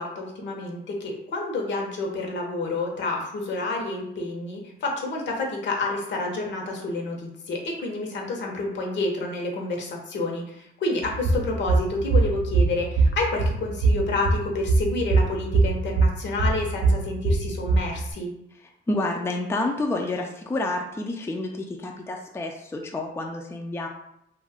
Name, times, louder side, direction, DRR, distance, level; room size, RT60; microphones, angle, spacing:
voice 1, 0.0-18.3, left 2 dB, 65° left, 0 dB, 0.8 m, -29 dB
sound 1, 11.0-18.1, right 3 dB, 70° right, 0.6 m, -23 dB
voice 2, 18.9-23.9, left 2 dB, 15° left, 2 dB, 0.3 m, -29 dB
2.5 x 2.3 x 3.4 m, 0.79 s
cardioid pair, 90°, 20 cm